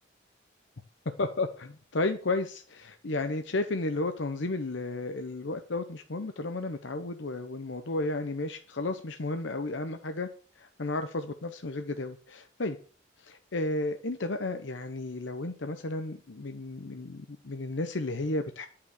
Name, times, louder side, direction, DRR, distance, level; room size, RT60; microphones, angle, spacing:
voice 1, 1.2-10.3 10.6-12.8 13.2-18.7, left 2 dB, 70° left, 7 dB, 0.8 m, -33 dB
11.5 x 5.8 x 6.5 m, 0.41 s
head